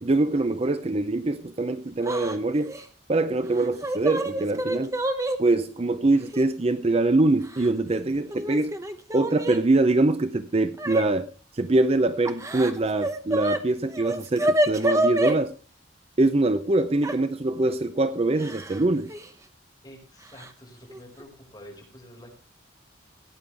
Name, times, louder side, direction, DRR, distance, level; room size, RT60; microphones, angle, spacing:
voice 1, 0.0-2.7 3.1-5.0 5.4-8.8 9.1-11.3 11.5-15.5 16.2-19.1, right 2 dB, 30° right, 11 dB, 0.6 m, -23 dB
Yell / Crying sobbing, 2.0-2.4 2.7-2.8 3.6-5.4 6.3-6.4 7.4-8.0 8.3-9.6 10.8-11.1 12.2-13.6 13.9-15.4 17.0-17.2 18.4-18.8 19.1-19.3 20.4-20.5 20.9-21.2, right 1 dB, 15° right, 1.0 m, -27 dB
voice 2, 19.8-22.3, equal, 20° left, -1 dB, 5.4 m, -47 dB
17.0 x 9.7 x 3.4 m, 0.37 s
head